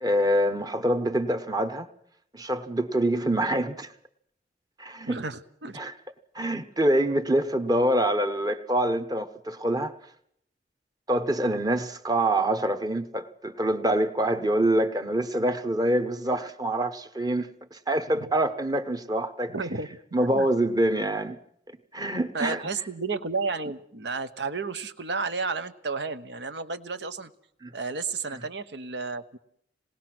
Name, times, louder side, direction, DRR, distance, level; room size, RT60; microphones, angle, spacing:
voice 1, 0.0-1.9 2.3-3.9 4.8-5.2 5.7-5.9 6.3-9.9 11.1-19.5 20.1-21.4 21.9-22.6 27.6-27.7, right 1 dB, 20° right, 1.0 m, -25 dB
voice 2, 5.1-5.8 19.5-20.5 22.3-27.3 27.7-29.4, right 4 dB, 75° right, 1.1 m, -32 dB
27.0 x 19.5 x 6.1 m
head